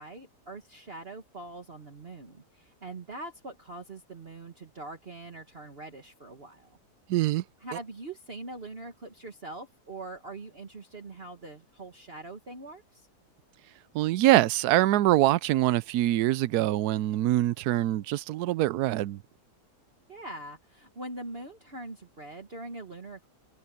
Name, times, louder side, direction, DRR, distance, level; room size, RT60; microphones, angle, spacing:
voice 1, 0.0-6.7 7.6-13.1 20.1-23.3, right 2 dB, 35° right, 1.9 m, -43 dB
voice 2, 7.1-7.4 13.9-19.2, right 15 dB, 75° right, 1.1 m, -24 dB
omnidirectional pair, 1.8 m